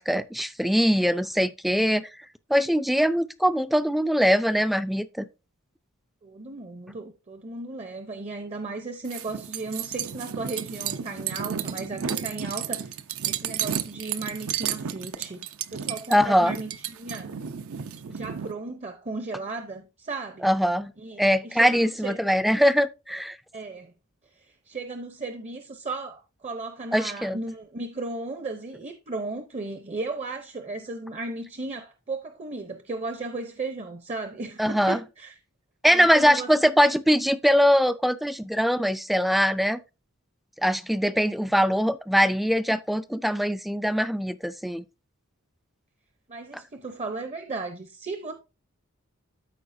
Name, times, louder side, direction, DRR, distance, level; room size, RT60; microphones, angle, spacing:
voice 1, 0.0-2.1 2.5-5.3 16.1-16.6 20.4-20.9 21.2-23.4 26.9-27.4 34.6-35.0 35.8-39.8 40.6-44.8, equal, ahead, 0.3 m, -22 dB
voice 2, 6.2-12.9 13.2-17.4 18.1-20.5 21.0-22.3 23.5-23.9 24.4-35.4 35.9-36.5 46.3-48.3, right 3 dB, 30° right, 0.7 m, -35 dB
sound 1, 9.1-18.5, right 8 dB, 70° right, 0.6 m, -32 dB
13.5 x 4.6 x 2.6 m
head